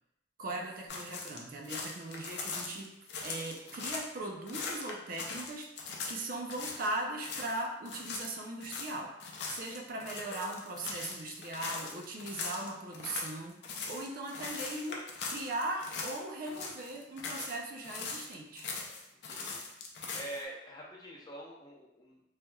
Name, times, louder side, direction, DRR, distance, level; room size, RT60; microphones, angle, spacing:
voice 1, 0.4-2.9 3.2-9.1 9.5-18.7, right 2 dB, 55° right, 1 dB, 0.4 m, -39 dB
sound 1, 0.9-4.1 4.5-6.9 7.2-7.6 7.9-16.2 16.5-17.6 17.8-20.4, left 4 dB, 70° left, 0.5 m, -40 dB
voice 2, 19.3-19.6 20.1-22.2, right 1 dB, 25° left, -3 dB, 0.6 m, -45 dB
3.2 x 2.9 x 2.3 m, 0.85 s
head